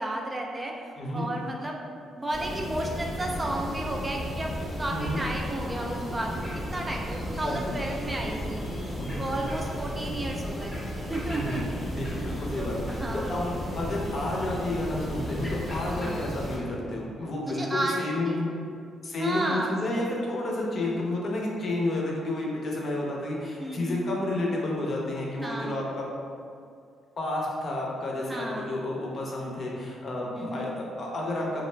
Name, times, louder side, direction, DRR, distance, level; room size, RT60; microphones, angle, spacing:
voice 1, 0.0-1.8 2.2-4.5 4.8-6.3 6.7-8.6 9.2-10.8 11.1-11.6 11.9-12.3 12.6-13.4 16.0-16.3 17.4-18.4 19.2-19.8 20.8-21.0 23.6-24.0 25.4-25.8 28.3-28.7 30.3-30.8, right 1 dB, 20° right, 0 dB, 0.3 m, -33 dB
voice 2, 1.0-1.3 4.9-5.2 7.4-7.7 9.0-9.2 11.3-11.6 11.9-18.5 19.0-26.0 27.2-31.7, left 1 dB, 50° left, -3 dB, 0.6 m, -31 dB
sound 1, 2.3-16.6, equal, 5° left, 0.8 m, -34 dB
2.3 x 2.1 x 3.2 m, 2.3 s
cardioid pair, 75°, 0 cm